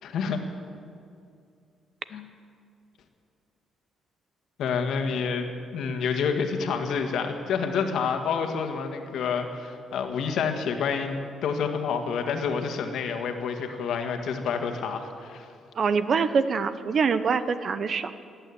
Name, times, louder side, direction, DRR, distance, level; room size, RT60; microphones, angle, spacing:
voice 1, 0.0-0.4 2.1-2.3 4.6-11.2 11.4-15.5, left 6 dB, 75° left, 5 dB, 1.7 m, -28 dB
voice 2, 15.8-18.1, right 5 dB, 50° right, 13 dB, 0.8 m, -24 dB
18.5 x 8.9 x 8.6 m, 2.4 s
cardioid pair, 90°, 0 cm